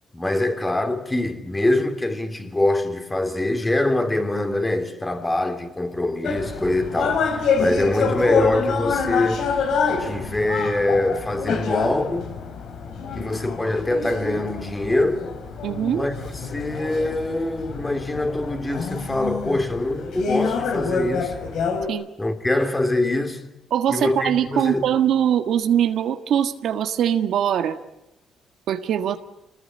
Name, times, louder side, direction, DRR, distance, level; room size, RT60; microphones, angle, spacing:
voice 1, 0.1-9.4 10.0-12.3 13.1-15.3 15.9-21.3 22.2-23.5 23.9-24.9, left 2 dB, 15° left, 3.1 m, -24 dB
sound 1, 6.2-21.9, left 5 dB, 75° left, 4.3 m, -27 dB
voice 2, 15.6-16.1 21.9-22.1 23.7-27.8 28.7-29.2, right 9 dB, 75° right, 1.7 m, -22 dB
26.5 x 20.5 x 9.9 m
cardioid pair, 90°, 0 cm